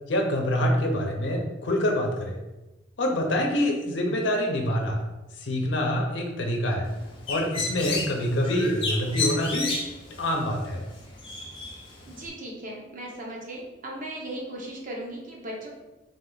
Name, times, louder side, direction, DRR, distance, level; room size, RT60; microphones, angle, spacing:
voice 1, 0.1-2.4 3.0-5.0 5.4-6.9 7.3-9.8 10.2-10.8, left 1 dB, 75° left, 1 dB, 0.7 m, -26 dB
Bird, 6.8-12.3, left 3 dB, 30° left, 0.8 m, -33 dB
voice 2, 12.1-15.7, right 1 dB, 45° right, -2 dB, 1.0 m, -37 dB
3.6 x 3.3 x 4.0 m, 1.0 s
head